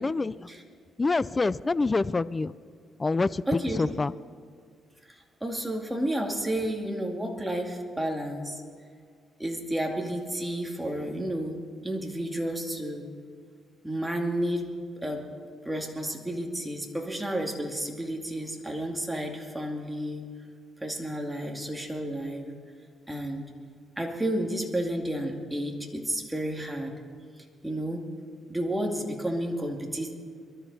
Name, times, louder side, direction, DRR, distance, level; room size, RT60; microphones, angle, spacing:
voice 1, 0.0-0.4 1.0-2.5 3.0-4.1, left 3 dB, 25° left, 18 dB, 0.4 m, -26 dB
voice 2, 3.5-3.8 5.1-8.6 9.4-13.1 13.8-14.7 15.0-15.2 15.6-20.2 20.8-22.5 23.1-23.5 24.0-26.9 27.6-28.0 28.5-30.1, right 1 dB, 10° right, 1 dB, 2.4 m, -31 dB
23.0 x 12.5 x 4.2 m, 2.1 s
cardioid pair, 90°, 0 cm